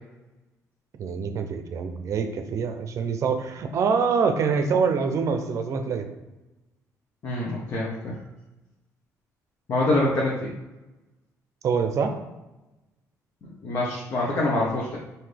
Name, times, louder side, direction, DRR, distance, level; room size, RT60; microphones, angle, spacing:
voice 1, 1.0-6.1 11.6-12.1, right 5 dB, 55° right, 7 dB, 0.6 m, -25 dB
voice 2, 7.2-8.1 9.7-10.5 13.4-15.0, left 2 dB, 45° left, -4 dB, 1.0 m, -25 dB
5.6 x 2.7 x 3.4 m, 1.0 s
cardioid pair, 120°, 6 cm